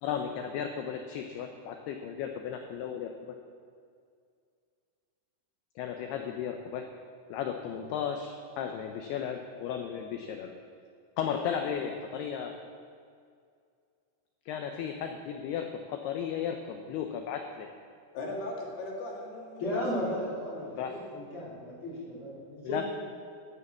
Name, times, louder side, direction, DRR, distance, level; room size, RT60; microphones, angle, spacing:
voice 1, 0.0-3.1 5.8-6.8 7.3-10.5 11.2-12.5 14.5-17.7 20.8-20.9 22.6-22.8, left 8 dB, 90° left, 4 dB, 2.2 m, -35 dB
voice 2, 18.1-20.2, left 2 dB, 65° left, -2 dB, 3.7 m, -39 dB
voice 3, 19.6-22.8, left 1 dB, 30° left, -7 dB, 3.6 m, -35 dB
10.5 x 9.7 x 7.2 m, 2.3 s
omnidirectional pair, 5.5 m